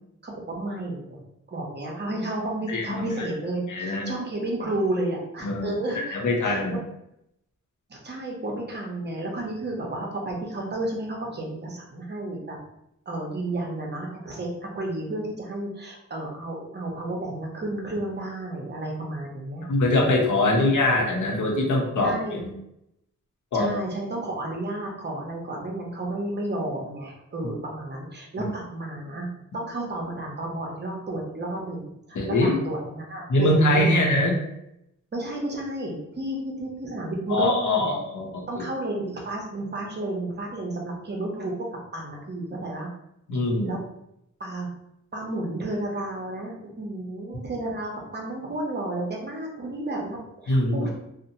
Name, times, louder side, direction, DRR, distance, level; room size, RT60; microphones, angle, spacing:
voice 1, 0.2-1.2 1.5-6.2 6.4-6.8 7.9-12.6 13.1-19.6 20.5-20.6 22.0-22.4 23.5-29.3 29.5-34.0 35.1-37.9 38.5-41.5 41.9-42.9 43.6-43.8 44.4-44.7 45.1-50.9, right 1 dB, 35° right, -1 dB, 0.7 m, -32 dB
voice 2, 2.7-3.3 3.7-4.1 5.4-6.8 19.7-22.5 23.5-23.7 28.4-28.5 32.1-32.6 33.3-34.4 37.3-38.6 43.3-43.7 50.5-50.9, left 1 dB, 75° left, 1 dB, 0.7 m, -23 dB
2.8 x 2.1 x 2.6 m, 0.80 s
wide cardioid pair, 110°, 31 cm